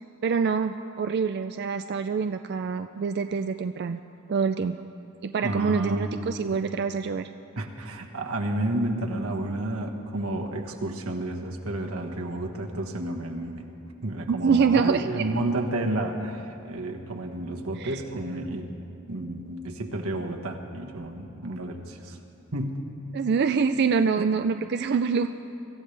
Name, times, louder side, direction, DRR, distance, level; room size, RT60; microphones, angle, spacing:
voice 1, 0.2-4.0 4.3-4.8 5.2-7.3 14.3-15.2 17.8-18.0 23.1-25.3, right 5 dB, 50° right, 8 dB, 0.4 m, -25 dB
voice 2, 5.4-6.6 7.6-13.7 14.0-18.7 19.1-22.2 22.5-22.8 24.2-24.3, right 1 dB, 90° right, 2 dB, 1.4 m, -31 dB
24.0 x 14.0 x 3.3 m, 2.8 s
head